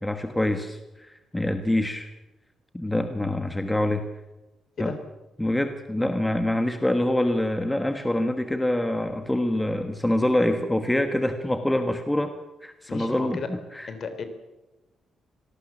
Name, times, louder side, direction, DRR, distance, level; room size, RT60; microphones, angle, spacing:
voice 1, 0.0-2.1 2.7-4.0 4.8-4.9 5.4-12.3 12.6-13.9, left 1 dB, 5° left, 7 dB, 1.3 m, -25 dB
voice 2, 12.9-13.5 13.9-14.2, left 5 dB, 45° left, 10 dB, 3.4 m, -33 dB
26.0 x 18.5 x 7.3 m, 1.0 s
cardioid pair, 160°, 0 cm